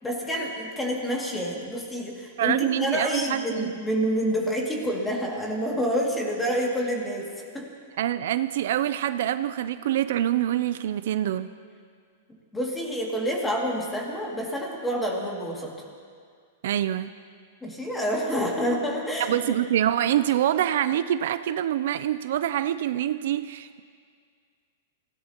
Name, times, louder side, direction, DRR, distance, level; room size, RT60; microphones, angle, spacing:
voice 1, 0.0-7.7 12.5-15.7 17.6-19.3, equal, 10° left, -2 dB, 2.4 m, -28 dB
voice 2, 2.4-3.7 8.0-11.5 16.6-17.1 19.2-23.8, right 11 dB, 65° right, 13 dB, 0.5 m, -25 dB
25.0 x 17.0 x 3.0 m, 2.1 s
supercardioid pair, 155°, 0 cm